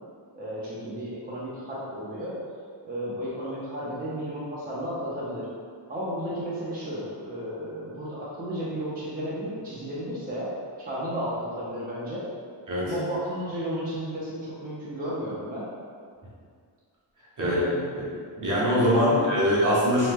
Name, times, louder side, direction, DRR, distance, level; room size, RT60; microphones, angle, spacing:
voice 1, 0.4-2.4 2.8-5.5 5.9-10.5 10.8-12.3 12.8-15.7 17.4-17.8, equal, 20° right, -8 dB, 0.5 m, -33 dB
voice 2, 18.4-20.1, equal, 45° right, -7 dB, 0.8 m, -22 dB
2.9 x 2.1 x 3.4 m, 2.1 s
wide cardioid pair, 160°, 42 cm